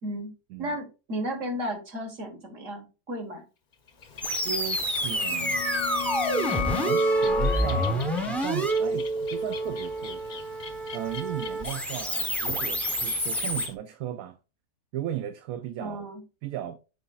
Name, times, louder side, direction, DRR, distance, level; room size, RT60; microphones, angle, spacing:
voice 1, 0.0-0.3 0.6-3.4 15.8-16.2, equal, 55° right, 1.8 m, -34 dB
Bird, 3.7-13.8, left 5 dB, 40° left, 0.7 m, -44 dB
sound 1, 4.2-13.7, right 1 dB, ahead, 0.8 m, -28 dB
voice 2, 4.2-5.6 6.7-10.2 10.9-14.4 14.9-16.1 16.4-16.8, right 12 dB, 75° right, 1.0 m, -36 dB
sound 2, 4.9-10.4, left 7 dB, 70° left, 0.9 m, -34 dB
9.8 x 4.2 x 2.3 m
omnidirectional pair, 1.6 m